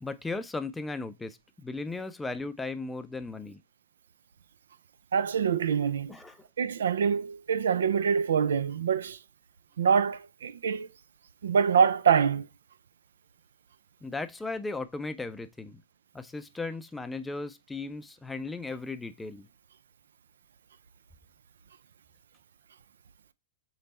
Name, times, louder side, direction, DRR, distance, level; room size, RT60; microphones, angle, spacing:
voice 1, 0.0-3.6 6.1-6.4 14.0-15.8 16.1-19.5, left 3 dB, 10° left, 0.4 m, -36 dB
voice 2, 5.1-6.1 6.6-9.2 9.8-10.9 11.4-12.5, right 7 dB, 80° right, 0.4 m, -25 dB
3.9 x 3.4 x 4.1 m
hypercardioid pair, 120°, 0 cm